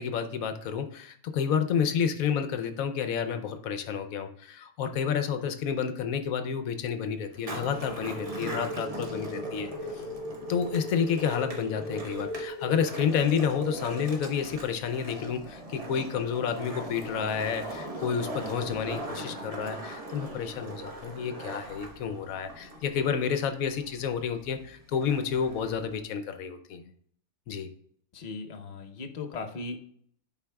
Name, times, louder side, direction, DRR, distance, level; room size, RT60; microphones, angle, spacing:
voice 1, 0.0-10.0 10.5-26.9 27.5-27.7, left 7 dB, 75° left, 9 dB, 1.0 m, -30 dB
Skateboard, 7.3-26.0, right 1 dB, 30° right, 0.9 m, -41 dB
sound 1, 7.7-14.1, left 1 dB, 10° left, 2.4 m, -38 dB
voice 2, 28.1-29.8, left 3 dB, 45° left, 5 dB, 0.6 m, -38 dB
10.5 x 4.6 x 2.3 m, 0.62 s
omnidirectional pair, 1.6 m